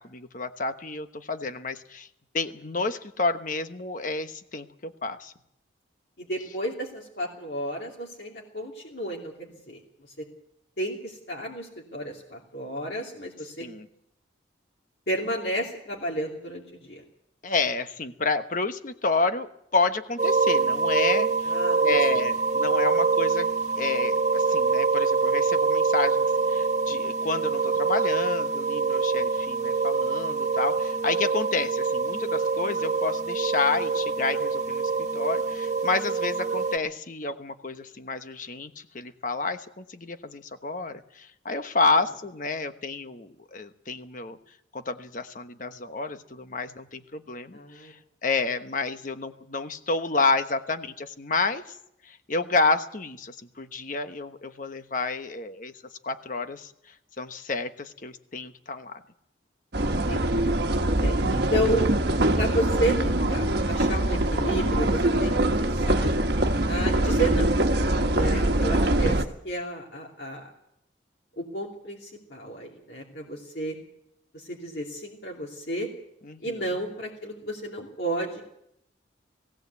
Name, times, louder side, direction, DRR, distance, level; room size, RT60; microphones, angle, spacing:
voice 1, 0.0-2.1 2.3-5.3 13.6-13.9 17.4-21.3 21.8-23.5 23.8-44.4 44.7-51.8 52.0-55.7 56.0-56.7 57.2-59.0 67.9-68.5 76.2-76.7, left 3 dB, 45° left, 9 dB, 1.1 m, -30 dB
voice 2, 6.2-9.8 10.8-13.7 15.1-17.0 21.4-22.0 47.5-47.9 59.9-60.5 61.0-61.9 62.3-66.1 66.7-67.5 68.1-70.5 71.4-73.8 74.3-75.9 76.4-78.4, right 1 dB, 60° left, -3 dB, 2.9 m, -32 dB
sound 1, 20.2-36.8, right 4 dB, 40° right, 1.7 m, -25 dB
sound 2, 59.7-69.2, right 1 dB, 55° right, 1.4 m, -23 dB
19.0 x 16.5 x 8.3 m, 0.77 s
head